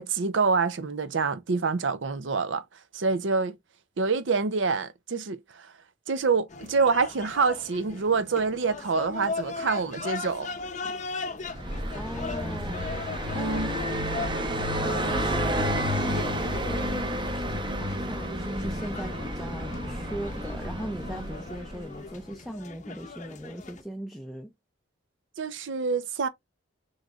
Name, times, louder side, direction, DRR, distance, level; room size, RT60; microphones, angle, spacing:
voice 1, 0.0-2.6 2.9-3.5 4.0-5.7 6.1-10.5 13.3-13.7 25.4-26.3, right 4 dB, 70° right, 0.6 m, -26 dB
sound 1, 6.5-23.8, left 4 dB, 40° left, 0.6 m, -39 dB
Car passing by, 11.4-22.1, equal, 25° right, 0.8 m, -30 dB
voice 2, 12.0-12.9 13.3-13.8 15.0-24.5, equal, ahead, 0.5 m, -39 dB
6.4 x 3.1 x 2.3 m
head